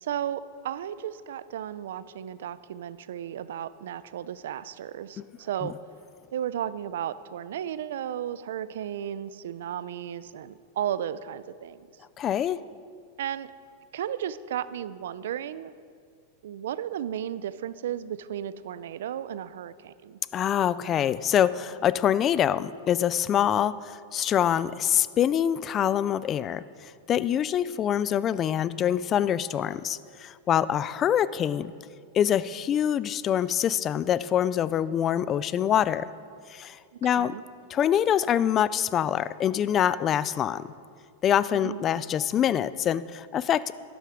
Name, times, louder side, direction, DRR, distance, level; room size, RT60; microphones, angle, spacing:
voice 1, 0.0-5.8 6.3-11.9 13.2-13.5 13.9-15.7 16.4-20.2 37.0-37.4 41.5-41.8, right 10 dB, 80° right, 16 dB, 0.5 m, -34 dB
voice 2, 12.2-12.6 20.3-26.6 27.1-31.7 32.1-36.1 36.5-36.8 37.0-37.3 37.7-40.7 41.2-43.7, left 10 dB, 25° left, 17 dB, 0.3 m, -25 dB
12.5 x 11.5 x 5.0 m, 2.2 s
supercardioid pair, 150°, 0 cm